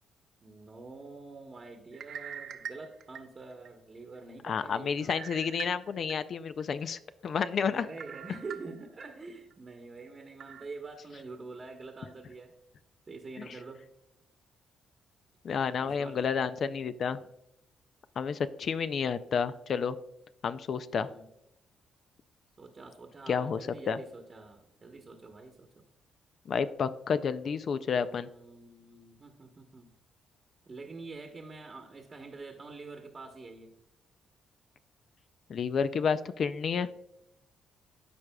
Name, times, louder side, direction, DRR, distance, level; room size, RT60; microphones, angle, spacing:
voice 1, 0.4-5.2 7.7-12.5 13.1-13.8 15.8-16.2 21.0-21.3 22.6-25.8 27.9-29.9 30.6-33.7, right 3 dB, 35° right, 2 dB, 1.0 m, -46 dB
sound 1, 1.9-3.7 4.2-4.3 5.1-6.1 6.6-6.7 8.0-9.1 9.5-9.6 10.4-10.7, right 8 dB, 70° right, 0.6 m, -43 dB
voice 2, 4.4-7.9 15.4-17.2 18.2-20.0 20.4-21.1 23.3-24.0 26.5-28.3 35.5-36.9, left 6 dB, 55° left, 13 dB, 0.4 m, -30 dB
13.5 x 4.8 x 2.2 m, 0.82 s
cardioid pair, 90°, 0 cm